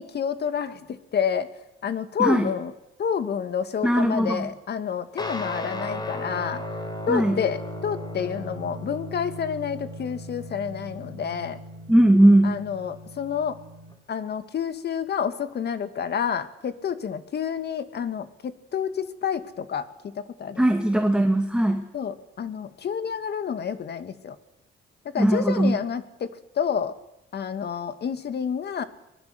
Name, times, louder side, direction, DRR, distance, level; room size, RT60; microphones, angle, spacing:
voice 1, 0.0-1.5 1.8-2.7 3.0-6.6 7.1-11.6 12.4-13.6 14.1-19.9 20.2-20.6 21.9-24.4 25.1-26.3 26.6-26.9 27.3-28.8, left 7 dB, 55° left, 10 dB, 2.2 m, -29 dB
voice 2, 2.2-2.5 3.8-4.5 7.1-7.4 11.9-12.6 20.6-21.8 25.2-25.8, right 1 dB, 5° right, 4 dB, 2.4 m, -19 dB
Guitar, 5.2-13.9, left 1 dB, 20° left, 4.2 m, -36 dB
24.0 x 20.5 x 7.9 m, 0.87 s
cardioid pair, 90°, 20 cm